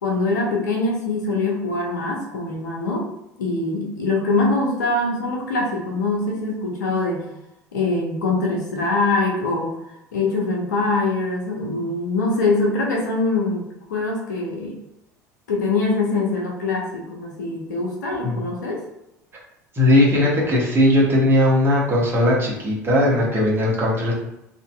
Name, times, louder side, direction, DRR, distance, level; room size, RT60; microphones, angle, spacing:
voice 1, 0.0-3.1 3.4-7.3 7.7-9.7 10.1-13.6 13.9-14.7 15.5-18.9, left 3 dB, 75° left, -1 dB, 0.6 m, -23 dB
voice 2, 19.7-24.1, left 1 dB, 25° right, -4 dB, 1.0 m, -18 dB
2.6 x 2.5 x 2.2 m, 0.86 s
figure-of-eight pair, 70°, 10 cm